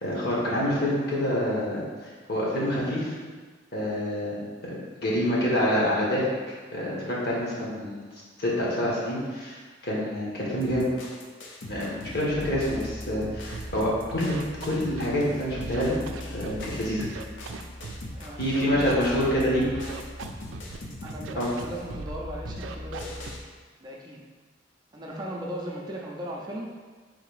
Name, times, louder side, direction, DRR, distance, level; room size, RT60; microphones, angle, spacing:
voice 1, 0.0-1.8 2.3-3.1 3.7-4.4 5.0-6.3 6.7-8.0 8.4-9.6 9.8-10.9 11.7-14.3 14.6-16.0 16.3-17.1 18.4-19.6 21.4-21.5, equal, 55° left, -5 dB, 1.2 m, -26 dB
sound 1, 10.6-23.4, left 1 dB, 85° left, 0.7 m, -40 dB
Scratching (performance technique), 13.5-13.8 14.1-15.2 15.5-16.6 17.0-18.1 18.4-19.4 19.7-20.8 21.1-21.6 21.9-22.2 22.4-23.3, right 4 dB, 85° right, 0.4 m, -39 dB
voice 2, 18.1-18.5 18.8-20.0 21.0-23.4 23.8-24.2 24.9-26.7, right 1 dB, 25° right, -2 dB, 0.5 m, -37 dB
3.8 x 2.8 x 4.8 m, 1.4 s
head